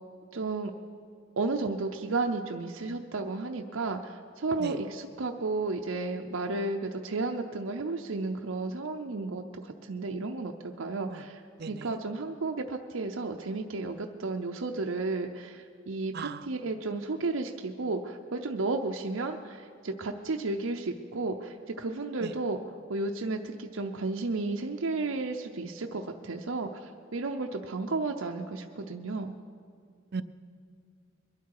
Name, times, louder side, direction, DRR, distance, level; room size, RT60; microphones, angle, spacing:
voice 1, 0.3-0.7 1.4-11.4 11.7-29.3, right 3 dB, 85° right, 3 dB, 0.7 m, -33 dB
voice 2, 11.6-12.0 16.1-16.4 22.2-22.3 30.1-30.2, right 5 dB, 50° right, 13 dB, 0.5 m, -37 dB
22.5 x 12.0 x 4.8 m, 2.2 s
head